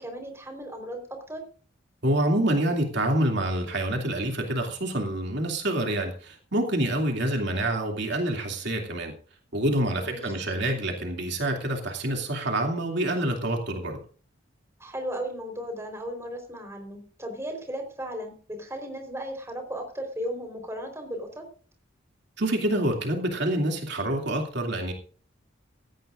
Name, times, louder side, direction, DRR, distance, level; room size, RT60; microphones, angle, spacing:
voice 1, 0.0-1.4 9.9-10.3 14.8-21.4, equal, 15° right, 4 dB, 4.2 m, -36 dB
voice 2, 2.0-9.1 9.5-14.0 22.4-24.9, right 1 dB, 60° right, 2 dB, 2.7 m, -27 dB
17.5 x 14.5 x 2.6 m, 0.41 s
head